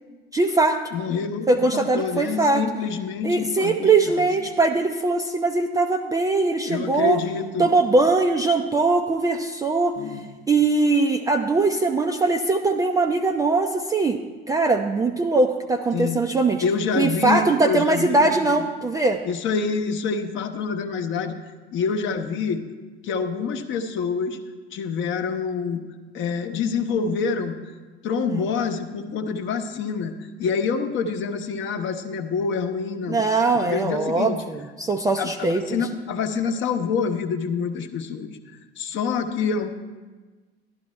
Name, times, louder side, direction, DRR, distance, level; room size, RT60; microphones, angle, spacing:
voice 1, 0.3-0.8 1.5-2.6 3.2-7.2 7.6-10.0 10.5-14.2 14.5-16.6 17.0-19.2 28.3-28.4 33.1-35.8, right 3 dB, 10° right, 4 dB, 0.4 m, -21 dB
voice 2, 0.9-4.3 6.7-7.7 10.0-10.2 15.9-16.2 16.6-18.6 19.2-21.3 21.7-22.6 23.0-24.4 24.7-25.8 26.1-27.6 28.0-34.4 35.2-39.7, left 5 dB, 40° left, 7 dB, 0.8 m, -27 dB
12.0 x 11.0 x 3.2 m, 1.3 s
figure-of-eight pair, 65°, 31 cm